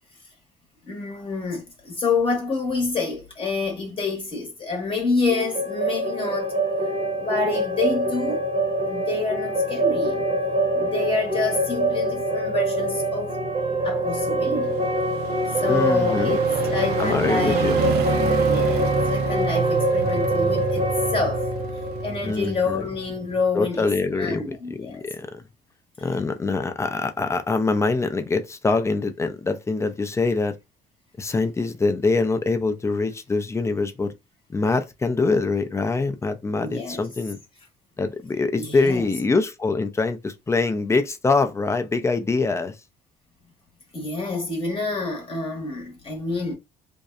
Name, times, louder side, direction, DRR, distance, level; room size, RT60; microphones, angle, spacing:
voice 1, 0.8-6.6 7.2-8.4 8.9-10.2 10.7-13.3 13.8-14.8 15.6-17.7 18.4-21.5 22.0-23.9 24.1-25.0 36.6-37.0 38.6-39.0 43.9-46.6, left 4 dB, 30° left, 0.9 m, -27 dB
sound 1, 5.3-23.1, right 1 dB, 35° right, 0.7 m, -24 dB
sound 2, 7.2-23.7 24.1-24.2, right 5 dB, 75° right, 0.5 m, -31 dB
voice 2, 15.7-16.4 17.0-17.8 22.2-22.9 23.5-25.4 26.0-30.5 31.2-34.1 34.5-37.4 38.0-42.7, left 3 dB, 15° left, 0.4 m, -24 dB
2.6 x 2.0 x 2.3 m
cardioid pair, 110°, 17 cm